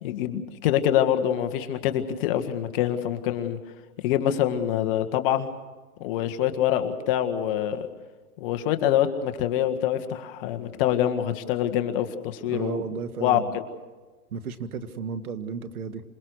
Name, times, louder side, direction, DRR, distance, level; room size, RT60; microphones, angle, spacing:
voice 1, 0.0-3.6 4.0-5.5 6.0-7.9 8.4-12.8 13.2-13.6, left 11 dB, 40° left, 8 dB, 1.8 m, -25 dB
voice 2, 12.5-13.6 14.3-16.0, right 5 dB, 75° right, 10 dB, 2.1 m, -33 dB
27.0 x 20.5 x 6.6 m, 1.3 s
hypercardioid pair, 145°, 44 cm